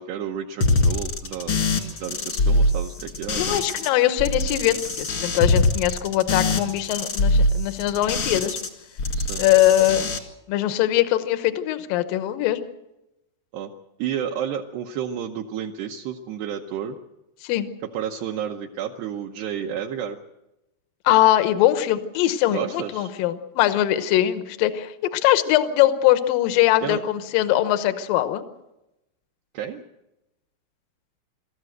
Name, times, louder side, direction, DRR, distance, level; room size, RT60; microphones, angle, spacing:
voice 1, 0.0-1.7 2.0-3.6 9.1-9.4 13.5-13.7 14.0-17.0 17.8-20.2 22.5-23.1 26.8-27.0 29.5-29.8, right 9 dB, 75° right, 2 dB, 2.6 m, -31 dB
sound 1, 0.6-3.9 4.2-8.7 9.0-10.2, left 2 dB, 65° left, 1.2 m, -23 dB
voice 2, 3.3-8.6 9.4-10.1 10.5-12.6 17.4-17.7 21.0-28.4, left 13 dB, 85° left, 10 dB, 2.0 m, -21 dB
25.5 x 14.0 x 7.9 m, 0.94 s
omnidirectional pair, 5.6 m